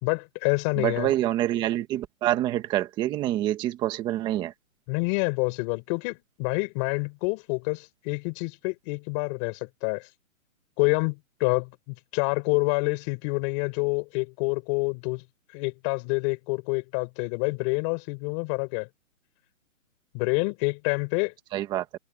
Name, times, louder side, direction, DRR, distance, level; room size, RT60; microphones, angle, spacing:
voice 1, 0.0-1.1 4.9-10.1 10.8-15.2 15.5-18.9 20.1-21.3, left 32 dB, 20° left, 4.6 m, -27 dB
voice 2, 0.8-4.5 21.5-21.8, right 13 dB, 10° right, 1.4 m, -26 dB
hypercardioid pair, 165°, 42 cm